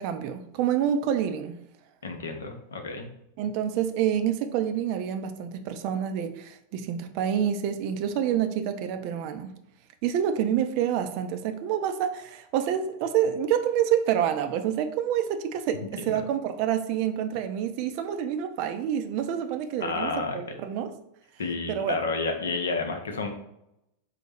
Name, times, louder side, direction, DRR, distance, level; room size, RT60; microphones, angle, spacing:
voice 1, 0.0-1.5 3.4-9.5 10.0-20.9 21.7-22.0, right 9 dB, 45° right, 8 dB, 0.4 m, -27 dB
voice 2, 2.0-3.1 16.1-16.2 19.8-20.4 21.4-23.3, left 4 dB, 65° left, 5 dB, 0.6 m, -30 dB
4.1 x 2.0 x 3.3 m, 0.82 s
figure-of-eight pair, 90°, 0 cm